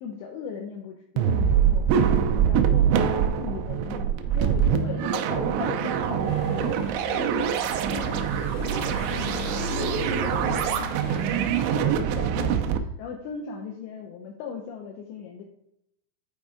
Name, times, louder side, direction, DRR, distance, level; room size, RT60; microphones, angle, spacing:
voice 1, 0.0-1.9 2.5-8.3 8.7-11.5 11.8-15.4, left 5 dB, 85° left, 1 dB, 2.5 m, -38 dB
sound 1, 1.2-12.8, right 8 dB, 85° right, 2.7 m, -24 dB
sound 2, 6.2-11.8, left 2 dB, 65° left, 2.1 m, -37 dB
8.8 x 4.4 x 3.6 m, 0.78 s
omnidirectional pair, 5.9 m